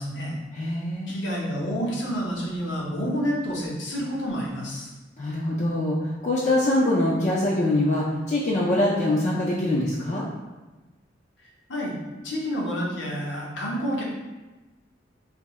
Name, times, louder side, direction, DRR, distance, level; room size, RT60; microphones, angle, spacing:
voice 1, 0.0-0.4 1.1-4.9 11.4-12.0 12.2-14.0, equal, 75° left, -3 dB, 0.8 m, -29 dB
voice 2, 0.5-1.1 5.2-10.3, left 1 dB, 40° left, -4 dB, 0.4 m, -24 dB
3.5 x 2.7 x 3.0 m, 1.2 s
head